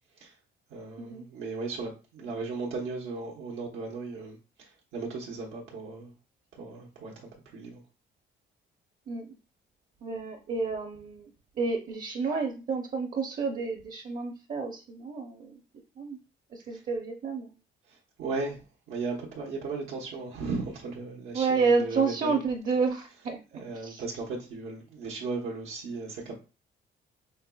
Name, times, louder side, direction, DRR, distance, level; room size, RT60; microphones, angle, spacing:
voice 1, 0.7-6.1 6.5-7.8 16.7-16.8 17.9-18.6 18.9-22.4 23.5-26.4, right 3 dB, 85° right, 1.0 m, -36 dB
voice 2, 10.0-11.3 11.6-15.6 16.0-16.2 16.5-17.5 21.3-23.4 23.7-24.0, right 4 dB, 45° right, 0.7 m, -30 dB
5.4 x 2.8 x 2.3 m
cardioid pair, 90°, 20 cm